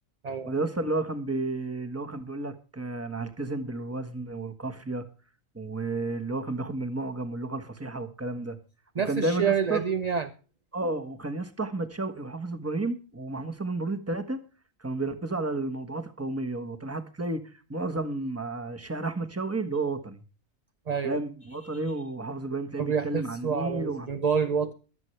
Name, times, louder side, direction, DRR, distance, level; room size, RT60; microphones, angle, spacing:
voice 1, 0.4-5.0 5.5-8.6 9.0-9.8 10.7-14.4 14.8-20.2 21.0-24.1, right 2 dB, 10° right, 7 dB, 1.2 m, -32 dB
voice 2, 9.0-10.3 20.9-21.2 22.8-24.7, right 6 dB, 40° right, 8 dB, 0.7 m, -27 dB
23.5 x 8.1 x 3.3 m, 0.36 s
omnidirectional pair, 1.4 m